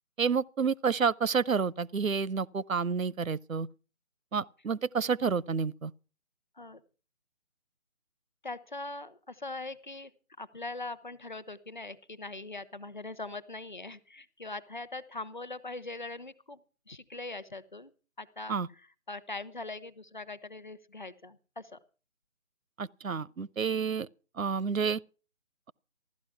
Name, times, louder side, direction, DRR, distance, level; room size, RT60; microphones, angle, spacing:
voice 1, 0.2-3.7 4.3-5.9 18.5-18.7 22.8-24.1 24.4-25.0, right 5 dB, 75° right, 0.6 m, -29 dB
voice 2, 8.4-10.1 10.4-16.6 16.9-17.9 18.2-21.8, left 2 dB, 35° left, 0.8 m, -41 dB
15.0 x 12.0 x 5.8 m
figure-of-eight pair, 155°, 41 cm